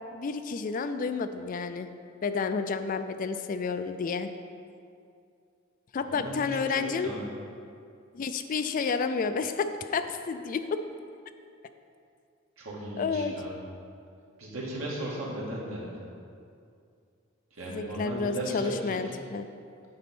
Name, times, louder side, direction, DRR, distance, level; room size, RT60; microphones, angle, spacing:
voice 1, 0.1-1.9 2.2-4.3 5.9-7.1 8.1-10.8 13.0-13.3 17.7-19.5, left 5 dB, 40° left, 9 dB, 0.3 m, -30 dB
voice 2, 6.0-7.2 12.6-13.6 14.4-15.9 17.5-19.2, right 1 dB, 90° right, -5 dB, 2.0 m, -36 dB
8.8 x 4.2 x 6.0 m, 2.4 s
head